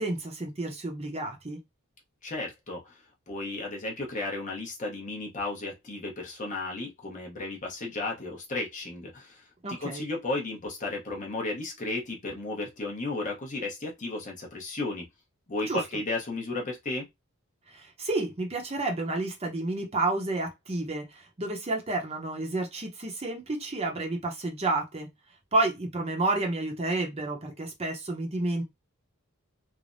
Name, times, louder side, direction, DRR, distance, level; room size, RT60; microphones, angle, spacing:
voice 1, 0.0-1.6 9.6-10.0 15.7-15.8 17.7-25.1 25.5-28.6, right 2 dB, 30° right, 0.6 m, -30 dB
voice 2, 2.2-3.0 3.3-9.4 9.7-15.1 15.5-17.1, left 2 dB, 35° left, 0.7 m, -34 dB
3.2 x 2.1 x 2.5 m
head